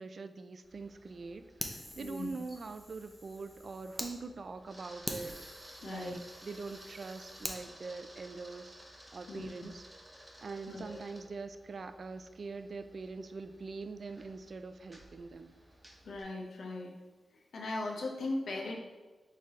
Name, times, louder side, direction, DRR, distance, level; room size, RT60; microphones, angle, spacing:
voice 1, 0.0-8.7 9.1-9.8 10.4-15.5, right 4 dB, 60° right, 10 dB, 0.3 m, -43 dB
Camera, 0.6-16.2, right 1 dB, 15° right, 1.0 m, -56 dB
Fire, 1.6-4.1 4.6-4.7 5.0-7.6, equal, 5° left, 0.6 m, -44 dB
voice 2, 2.0-2.3 5.8-6.2 9.3-9.5 10.7-11.0 16.0-16.9 17.5-18.8, left 2 dB, 80° left, 0 dB, 0.7 m, -38 dB
4.5 x 3.3 x 3.6 m, 1.2 s
cardioid pair, 60°, 0 cm